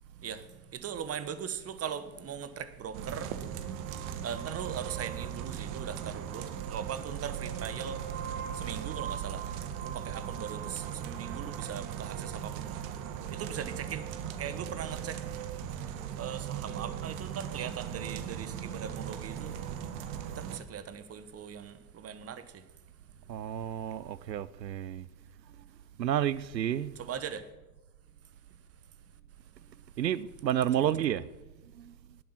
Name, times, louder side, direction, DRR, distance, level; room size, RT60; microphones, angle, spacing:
voice 1, 0.2-3.4 3.8-3.9 4.2-8.0 8.5-9.5 9.8-12.8 13.3-14.1 14.4-15.2 16.2-19.6 20.3-22.6 27.0-27.4 30.8-30.9, right 8 dB, 30° right, 1.3 m, -40 dB
sound 1, 2.9-20.6, right 9 dB, 55° right, 1.6 m, -38 dB
voice 2, 23.3-25.1 26.0-26.9 30.0-31.3 31.7-31.9, right 10 dB, 90° right, 0.7 m, -30 dB
18.5 x 7.5 x 5.8 m
hypercardioid pair, 80°, 49 cm